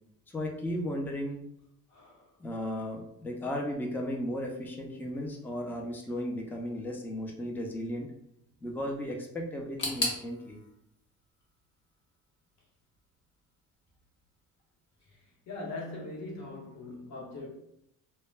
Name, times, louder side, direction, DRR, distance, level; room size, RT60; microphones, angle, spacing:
voice 1, 0.3-1.4 2.4-8.1 8.6-10.6, left 1 dB, 5° left, 1 dB, 0.4 m, -35 dB
voice 2, 1.9-2.3 15.1-17.5, left 2 dB, 60° left, -2 dB, 1.0 m, -41 dB
sound 1, 9.8-12.7 12.9-13.7 14.0-14.1 15.0-15.1, left 2 dB, 35° left, 0.9 m, -38 dB
2.1 x 2.1 x 3.2 m, 0.77 s
cardioid pair, 105°, 32 cm